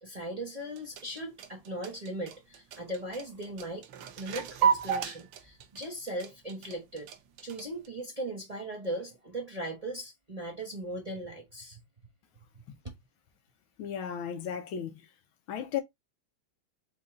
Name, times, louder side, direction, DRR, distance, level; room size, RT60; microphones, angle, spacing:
voice 1, 0.0-3.9 4.2-7.1 7.4-11.8 12.8-12.9, right 1 dB, 20° right, 1.2 m, -38 dB
sound 1, 0.6-7.9, right 7 dB, 90° right, 1.6 m, -33 dB
voice 2, 13.8-15.1 15.5-15.8, left 8 dB, 75° left, 1.6 m, -35 dB
5.4 x 2.4 x 3.7 m
omnidirectional pair, 2.3 m